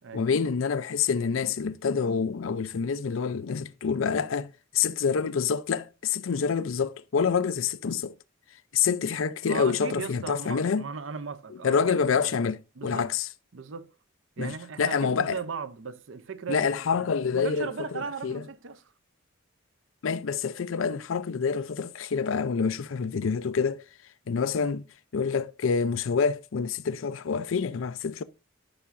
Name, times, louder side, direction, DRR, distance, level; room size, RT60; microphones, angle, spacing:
voice 1, 0.1-8.1 8.7-10.8 11.6-13.3 14.4-14.5 14.8-15.4 16.5-17.7 17.9-18.4 20.0-23.8 24.3-24.9 25.1-28.2, left 6 dB, 80° left, 0.5 m, -27 dB
voice 2, 9.4-12.4 12.8-13.1 13.5-13.9 14.4-18.9, right 5 dB, 70° right, 0.6 m, -37 dB
12.5 x 5.8 x 2.5 m
head